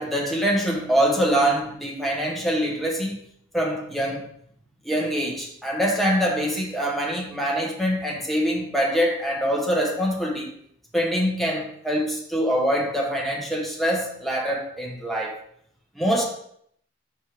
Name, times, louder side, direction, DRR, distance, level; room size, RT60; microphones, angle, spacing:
voice 1, 0.0-3.2 3.5-4.3 4.8-10.5 10.9-15.3 15.9-16.2, equal, ahead, -2 dB, 1.1 m, -24 dB
6.0 x 5.4 x 3.4 m, 0.69 s
head